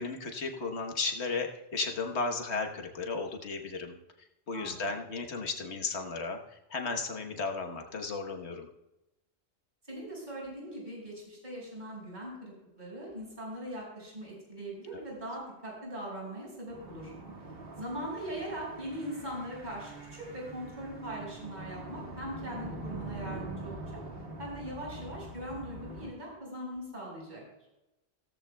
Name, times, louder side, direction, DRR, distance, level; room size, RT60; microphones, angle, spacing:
voice 1, 0.0-4.0 4.5-8.7, left 4 dB, 85° left, 4 dB, 1.5 m, -34 dB
voice 2, 4.5-4.9 9.9-17.1 17.8-24.0 24.4-27.4, right 1 dB, 45° right, -3 dB, 5.7 m, -40 dB
sound 1, 16.7-26.1, right 2 dB, 60° right, 1.9 m, -44 dB
16.5 x 14.5 x 2.3 m, 0.95 s
omnidirectional pair, 1.1 m